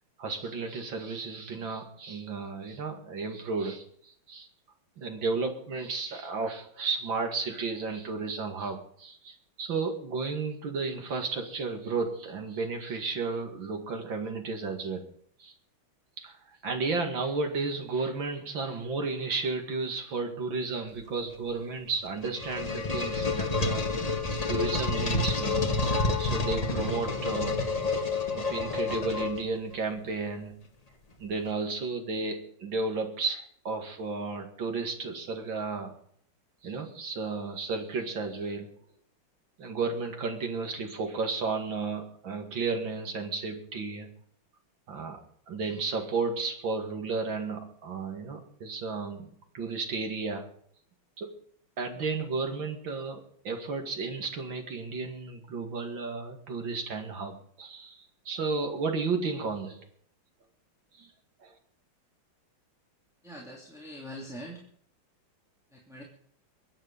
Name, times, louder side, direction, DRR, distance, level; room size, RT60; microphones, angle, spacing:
voice 1, 0.2-4.5 5.0-15.0 15.4-15.5 16.2-16.4 16.6-24.2 24.5-27.6 28.3-30.6 31.2-35.9 36.6-38.7 39.6-44.1 44.9-45.2 45.5-49.3 49.5-50.5 51.2-51.3 51.8-59.8 60.9-61.1 61.4-61.5, right 4 dB, 65° right, 4 dB, 2.9 m, -33 dB
sound 1, 22.0-29.7, left 3 dB, 20° left, 1.3 m, -29 dB
voice 2, 63.2-64.6 65.7-66.0, equal, ahead, -1 dB, 2.5 m, -43 dB
22.5 x 9.0 x 5.3 m, 0.63 s
omnidirectional pair, 2.3 m